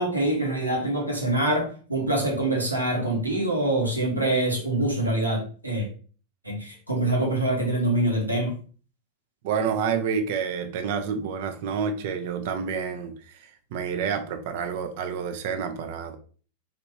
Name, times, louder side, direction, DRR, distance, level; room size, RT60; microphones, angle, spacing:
voice 1, 0.0-5.9 6.4-8.5, right 1 dB, 85° right, 0 dB, 1.0 m, -25 dB
voice 2, 9.4-13.4 13.7-16.2, right 6 dB, 50° right, 8 dB, 0.5 m, -28 dB
3.3 x 2.4 x 3.0 m, 0.40 s
figure-of-eight pair, 90°, 0 cm